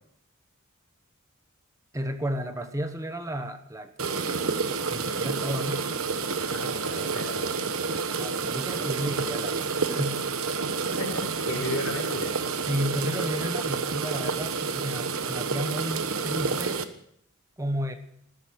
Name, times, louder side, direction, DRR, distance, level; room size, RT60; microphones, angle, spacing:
voice 1, 1.9-5.9 8.2-10.3 12.7-16.8 17.6-17.9, equal, 15° right, 7 dB, 1.2 m, -33 dB
sound 1, 4.0-16.8, right 5 dB, 70° right, 1.3 m, -29 dB
voice 2, 6.4-7.9 11.0-12.3, left 1 dB, 75° left, 2 dB, 5.9 m, -34 dB
15.0 x 13.0 x 6.4 m, 0.68 s
head